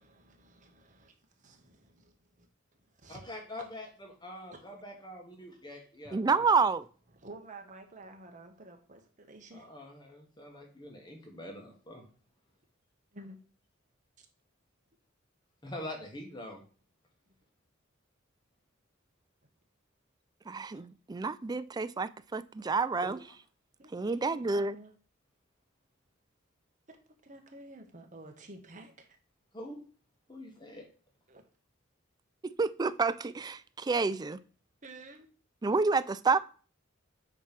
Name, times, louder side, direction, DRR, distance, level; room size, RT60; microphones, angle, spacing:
voice 1, 0.0-2.5 2.8-3.3 4.5-4.6 7.1-9.7 13.1-13.4 14.2-14.3 17.3-17.4 23.8-25.0 26.9-27.0 27.2-29.2 31.3-31.4 34.8-35.3, right 2 dB, 40° right, 1.3 m, -51 dB
voice 2, 3.1-3.9 4.2-6.4 9.5-12.0 15.6-16.6 23.0-23.2 29.5-29.8 30.3-30.8, left 1 dB, 20° left, 1.3 m, -44 dB
voice 3, 6.1-6.9 20.5-23.2 23.9-24.8 32.4-34.4 35.6-36.4, right 4 dB, 20° right, 0.3 m, -29 dB
8.9 x 3.2 x 5.9 m
head